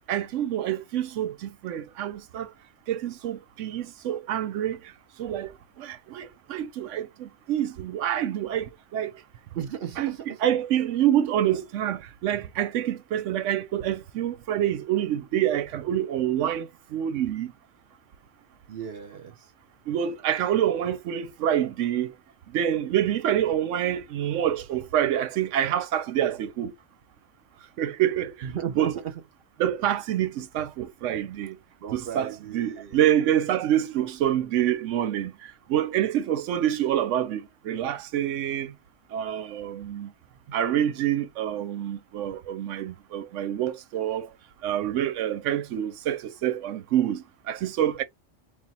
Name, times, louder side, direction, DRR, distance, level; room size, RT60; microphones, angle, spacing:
voice 1, 0.1-2.5 2.9-4.9 5.2-9.1 10.0-10.1 10.4-17.5 19.9-22.1 22.5-26.7 27.8-28.5 28.8-29.0 29.6-31.6 31.9-38.7 39.1-40.1 40.5-44.3 44.6-48.0, right 11 dB, 90° right, 0.9 m, -27 dB
voice 2, 9.5-10.4 18.7-19.5 28.4-29.2 31.8-33.0 39.2-39.7 40.5-40.6, right 9 dB, 60° right, 0.8 m, -36 dB
3.5 x 2.4 x 4.0 m
omnidirectional pair, 1.2 m